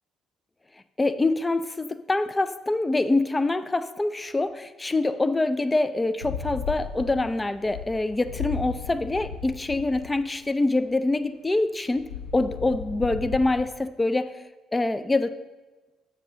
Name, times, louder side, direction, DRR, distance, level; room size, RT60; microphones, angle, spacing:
voice 1, 1.0-14.3 14.7-15.4, left 2 dB, 20° left, 12 dB, 0.5 m, -25 dB
sound 1, 6.2-10.1 11.9-13.6, left 6 dB, 80° left, 0.7 m, -35 dB
7.3 x 6.8 x 3.7 m, 1.2 s
hypercardioid pair, 50°, 0 cm